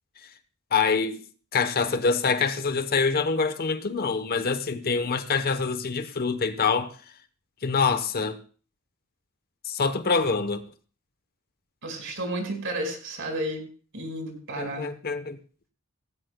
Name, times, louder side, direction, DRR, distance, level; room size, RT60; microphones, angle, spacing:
voice 1, 0.7-1.2 1.5-6.9 7.6-8.4 9.7-10.6 14.6-15.4, left 5 dB, 45° left, 0.9 m, -25 dB
voice 2, 11.8-13.6 13.9-14.9, right 1 dB, 60° right, 5.0 m, -32 dB
18.0 x 15.5 x 2.2 m
head